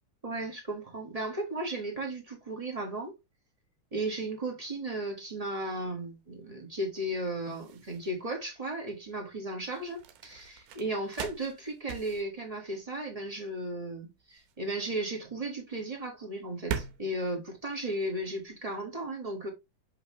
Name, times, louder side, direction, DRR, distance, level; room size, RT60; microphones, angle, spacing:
voice 1, 0.2-3.1 3.9-19.5, right 1 dB, 20° right, 0.9 m, -35 dB
sound 1, 4.7-18.6, right 7 dB, 85° right, 2.4 m, -44 dB
6.5 x 4.9 x 3.1 m
omnidirectional pair, 3.5 m